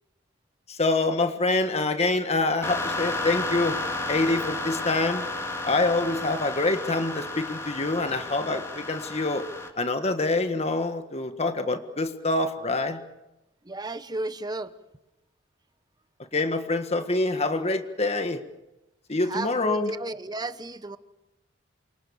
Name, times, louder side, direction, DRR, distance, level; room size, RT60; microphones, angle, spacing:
voice 1, 0.7-3.8 4.1-5.3 5.6-9.5 9.8-13.0 16.3-18.4 19.1-19.9, left 2 dB, 35° left, 7 dB, 1.6 m, -26 dB
sound 1, 2.6-9.7, left 2 dB, 15° left, 3.7 m, -32 dB
voice 2, 13.6-14.7 19.2-21.0, right 2 dB, 20° right, 12 dB, 1.0 m, -33 dB
28.5 x 24.0 x 7.2 m, 0.97 s
head